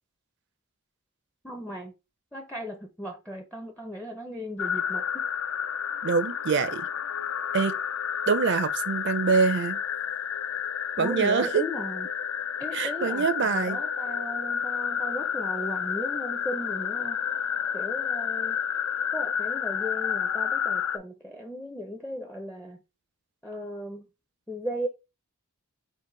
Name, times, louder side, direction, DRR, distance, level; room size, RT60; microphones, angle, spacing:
voice 1, 1.4-1.9 2.3-5.2 11.0-12.1 12.6-17.2 17.7-18.6 19.1-22.8 23.4-24.1 24.5-24.9, equal, 5° left, 0.4 m, -36 dB
sound 1, 4.6-21.0, left 8 dB, 70° left, 0.4 m, -30 dB
voice 2, 6.0-6.9 7.5-7.7 8.3-9.8 11.0-11.7 12.7-13.8, right 5 dB, 50° right, 0.4 m, -25 dB
4.6 x 2.4 x 3.7 m
head